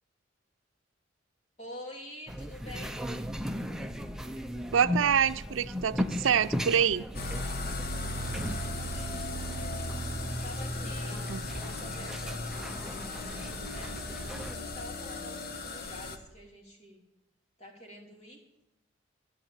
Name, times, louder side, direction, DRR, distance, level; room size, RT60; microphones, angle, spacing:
voice 1, 1.6-3.0 8.3-10.0 10.3-11.3 11.8-13.9 14.5-17.0 17.6-18.4, left 1 dB, 35° left, -1 dB, 3.1 m, -48 dB
sound 1, 2.3-14.5, equal, 5° right, 0.6 m, -37 dB
voice 2, 4.7-7.0 11.3-11.4, right 7 dB, 85° right, 13 dB, 0.5 m, -26 dB
sound 2, 7.1-16.2, left 2 dB, 55° left, 1.1 m, -36 dB
13.0 x 8.0 x 8.9 m, 0.87 s
head